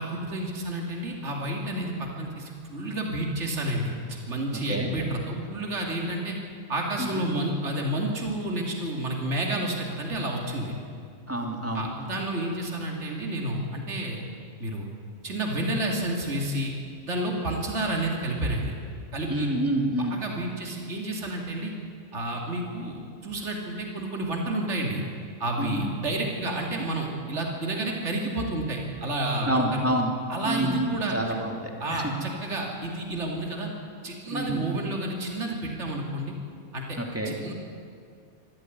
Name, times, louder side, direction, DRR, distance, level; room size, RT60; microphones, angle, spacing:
voice 1, 0.0-3.9 4.3-6.4 6.7-10.7 11.7-14.2 14.6-14.9 15.2-16.7 17.1-18.7 19.1-19.5 20.1-21.7 22.1-25.0 25.4-29.8 30.3-31.2 31.8-33.7 34.0-36.3 36.7-37.0 37.2-37.5, right 1 dB, 55° right, 0 dB, 3.0 m, -30 dB
voice 2, 11.3-11.9 19.3-20.2 25.6-25.9 29.5-30.1 30.4-31.5 31.9-32.1 34.3-34.8 37.0-37.3, right 1 dB, 10° right, 1 dB, 2.8 m, -28 dB
25.5 x 14.0 x 9.6 m, 2.3 s
omnidirectional pair, 1.4 m